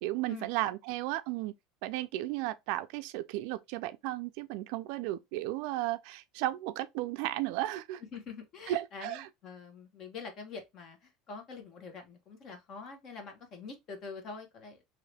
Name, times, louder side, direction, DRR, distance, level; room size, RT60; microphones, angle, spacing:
voice 1, 0.0-1.5 1.8-8.0 8.7-9.3, right 15 dB, 65° right, 0.4 m, -34 dB
voice 2, 8.1-14.8, left 5 dB, 40° left, 1.1 m, -45 dB
3.0 x 2.8 x 3.3 m
cardioid pair, 155°, 0 cm